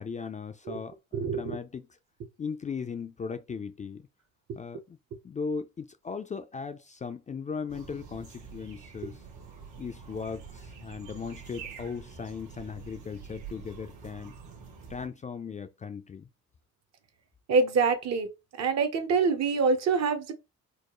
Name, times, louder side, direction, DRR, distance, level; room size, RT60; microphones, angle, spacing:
voice 1, 0.0-2.0 2.4-4.0 4.5-5.0 5.2-9.2 9.8-14.3 14.9-16.3, left 5 dB, 25° left, 0.3 m, -38 dB
voice 2, 1.1-1.6 17.5-18.3 18.6-20.3, right 4 dB, 60° right, 0.9 m, -25 dB
sound 1, 7.7-15.1, right 6 dB, 80° right, 1.5 m, -46 dB
4.3 x 2.3 x 3.0 m
cardioid pair, 90°, 30 cm